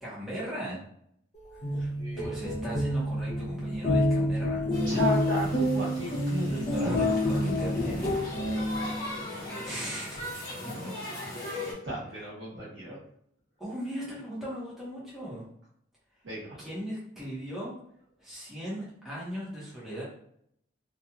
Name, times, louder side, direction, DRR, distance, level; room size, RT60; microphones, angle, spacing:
voice 1, 0.0-0.8 1.8-1.9 2.2-4.7 6.4-8.2 9.6-10.2 10.6-10.9 13.6-15.4 16.6-17.7 18.2-20.0, equal, ahead, -8 dB, 1.0 m, -37 dB
sound 1, 1.4-9.1, left 1 dB, 35° left, 0.6 m, -28 dB
voice 2, 1.9-2.6 4.9-7.1 8.4-9.0 9.3-9.7 11.8-13.0 16.2-16.6, right 1 dB, 75° right, -7 dB, 1.1 m, -36 dB
sound 2, 4.7-11.7, left 1 dB, 50° left, 1.0 m, -39 dB
2.8 x 2.5 x 2.3 m, 0.69 s
head